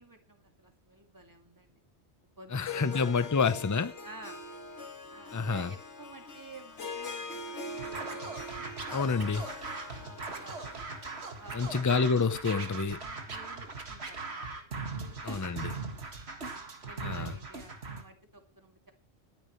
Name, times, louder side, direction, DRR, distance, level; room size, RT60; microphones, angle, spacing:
voice 1, 0.0-1.8 2.4-3.3 4.0-4.5 5.1-9.6 10.0-10.9 11.3-11.7 13.0-14.5 14.9-16.2 16.5-18.9, right 2 dB, 15° right, 2.2 m, -52 dB
Harp, 2.5-11.5, left 3 dB, 85° left, 2.1 m, -43 dB
voice 2, 2.5-3.9 5.3-5.7 8.9-9.4 11.5-13.0 15.2-15.7 17.0-17.3, left 5 dB, 20° left, 0.5 m, -28 dB
Scratching (performance technique), 7.7-18.0, right 3 dB, 70° right, 2.2 m, -40 dB
21.5 x 10.5 x 3.1 m
omnidirectional pair, 1.1 m